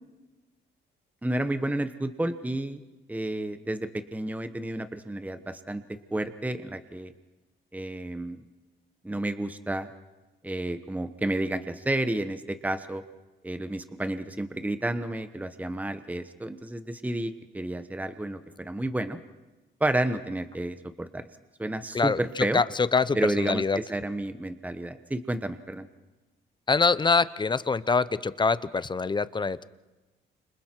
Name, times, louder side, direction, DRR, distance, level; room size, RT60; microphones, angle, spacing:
voice 1, 1.2-2.8 3.1-5.8 6.1-7.1 7.7-8.4 9.0-9.9 10.4-13.0 13.4-19.2 19.8-21.2 21.6-22.6 23.1-25.9, right 1 dB, 10° right, 10 dB, 1.1 m, -31 dB
voice 2, 21.9-23.8 26.7-29.6, left 4 dB, 25° left, 16 dB, 0.8 m, -25 dB
29.5 x 27.0 x 4.6 m, 1.1 s
cardioid pair, 90°, 20 cm